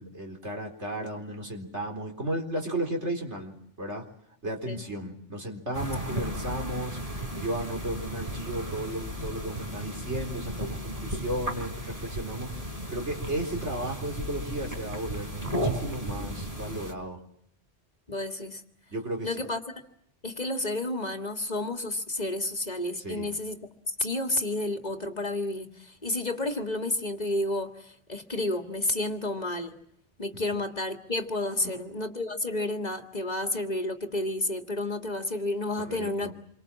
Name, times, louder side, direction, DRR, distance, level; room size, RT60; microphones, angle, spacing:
voice 1, 0.0-4.1 4.4-17.2 18.9-19.3 23.0-23.3 30.3-30.4 31.6-31.9 35.8-36.3, right 1 dB, 70° right, 2 dB, 4.4 m, -34 dB
sound 1, 5.7-16.9, right 1 dB, 30° right, 4.0 m, -35 dB
voice 2, 18.1-18.6 19.2-19.6 20.2-23.6 23.9-29.7 30.2-36.3, left 1 dB, 35° left, 5 dB, 1.9 m, -31 dB
27.5 x 24.5 x 7.4 m, 0.73 s
omnidirectional pair, 1.2 m